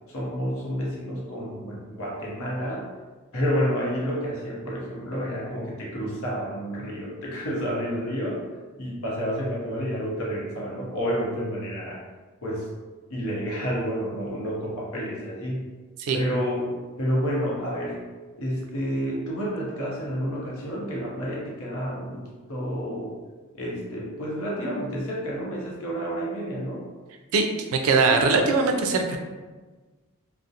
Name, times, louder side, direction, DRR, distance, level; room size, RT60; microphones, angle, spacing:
voice 1, 0.1-2.9 3.3-8.4 8.8-12.0 12.4-12.7 13.1-15.7 16.1-18.0 18.4-22.2 22.5-23.1 23.5-26.8 28.1-28.2, equal, 65° left, -3 dB, 0.7 m, -29 dB
voice 2, 27.3-29.2, right 4 dB, 70° right, 4 dB, 0.3 m, -21 dB
2.4 x 2.0 x 2.7 m, 1.3 s
head